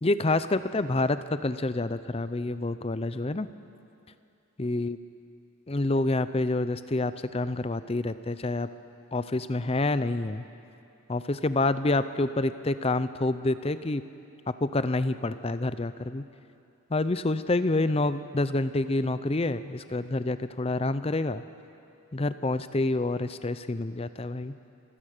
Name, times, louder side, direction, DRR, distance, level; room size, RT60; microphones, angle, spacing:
voice 1, 0.0-3.5 4.6-5.0 5.7-8.7 9.1-10.4 11.1-14.0 14.6-16.2 16.9-21.4 22.1-24.5, left 2 dB, 25° left, 13 dB, 0.6 m, -27 dB
27.5 x 16.5 x 6.7 m, 2.7 s
head